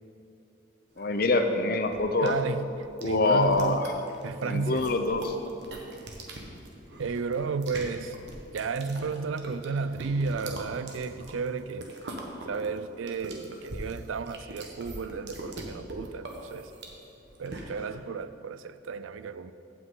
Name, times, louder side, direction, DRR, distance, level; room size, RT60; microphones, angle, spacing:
voice 1, 1.0-2.3 3.0-3.9 4.4-5.3, left 3 dB, 50° left, 7 dB, 0.7 m, -25 dB
sound 1, 1.0-18.0, right 2 dB, 60° right, 1.2 m, -43 dB
voice 2, 2.2-2.7 3.0-3.9 4.2-4.9 7.0-8.1 8.5-11.9 12.5-16.7 17.4-19.5, right 4 dB, 85° right, 13 dB, 0.4 m, -32 dB
15.5 x 6.0 x 3.8 m, 2.8 s
head